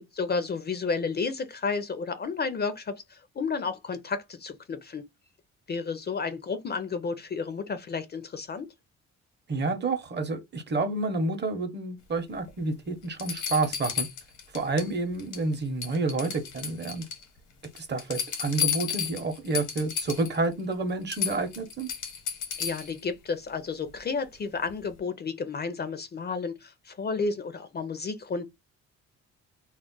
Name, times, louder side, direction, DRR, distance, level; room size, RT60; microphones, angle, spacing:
voice 1, 0.2-5.1 5.7-8.7 22.6-28.5, left 4 dB, 35° left, 0.5 m, -32 dB
voice 2, 9.5-14.1 14.5-17.1 17.7-21.9, right 3 dB, 35° right, 0.7 m, -29 dB
sound 1, 12.5-12.6 13.2-14.9 15.2-15.5 15.8-17.2 17.6-20.4 20.7-20.8 21.1-23.0 24.7-24.8, left 8 dB, 80° left, 1.0 m, -33 dB
2.4 x 2.0 x 3.7 m
cardioid pair, 90°, 30 cm